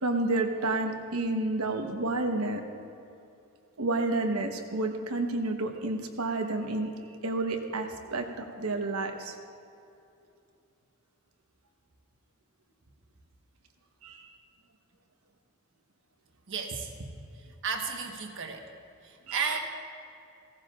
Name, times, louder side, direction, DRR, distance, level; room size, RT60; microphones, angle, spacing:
voice 1, 0.0-2.6 3.8-6.9 7.2-9.4 14.0-14.3 19.3-19.6, right 2 dB, 80° right, 3 dB, 1.1 m, -30 dB
voice 2, 16.5-16.9 17.6-18.7 19.0-19.6, right 5 dB, 60° right, 2 dB, 1.3 m, -33 dB
16.5 x 15.0 x 2.5 m, 2.7 s
head